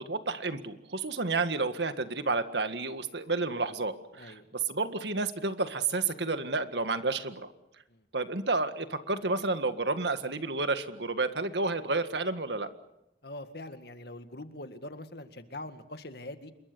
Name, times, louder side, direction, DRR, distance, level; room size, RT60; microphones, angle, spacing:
voice 1, 0.0-7.5 8.1-12.7, right 3 dB, 75° right, 9 dB, 1.8 m, -31 dB
voice 2, 13.2-16.5, left 1 dB, 65° left, 9 dB, 1.9 m, -43 dB
27.5 x 22.5 x 6.9 m, 0.90 s
head